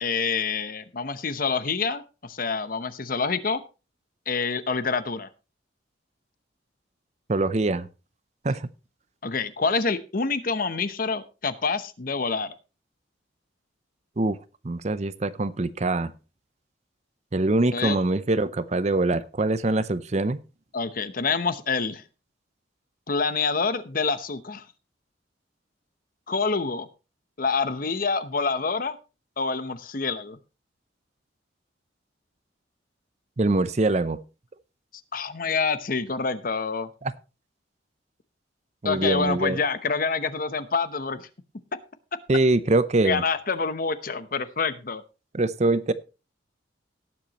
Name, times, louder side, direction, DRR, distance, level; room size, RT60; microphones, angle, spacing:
voice 1, 0.0-3.6 4.3-5.3 9.2-12.5 17.7-18.0 20.7-22.0 23.1-24.6 26.3-26.9 27.4-29.0 29.4-30.4 35.1-36.9 38.8-41.3 43.0-45.0, left 4 dB, 45° left, 13 dB, 0.8 m, -27 dB
voice 2, 7.3-7.9 8.4-8.7 14.2-14.4 14.6-16.1 17.3-20.4 33.4-34.2 37.0-37.1 38.8-39.6 42.3-43.2 45.3-45.9, right 2 dB, 35° right, 15 dB, 0.6 m, -23 dB
18.5 x 7.8 x 3.0 m, 0.31 s
head